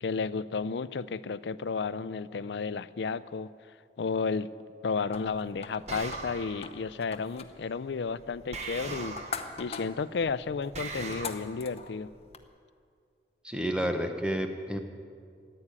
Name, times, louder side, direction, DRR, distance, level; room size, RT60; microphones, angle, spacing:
voice 1, 0.0-3.5 4.0-4.5 4.8-9.2 9.6-12.1, left 5 dB, 80° left, 17 dB, 0.4 m, -32 dB
sound 1, 5.1-12.4, left 5 dB, 35° left, 0.7 m, -44 dB
sound 2, 5.9-6.7 8.5-9.6 10.7-11.3, right 3 dB, 40° right, 1.1 m, -39 dB
voice 2, 13.4-14.8, equal, 5° right, 6 dB, 0.9 m, -30 dB
15.0 x 8.7 x 9.7 m, 2.3 s
head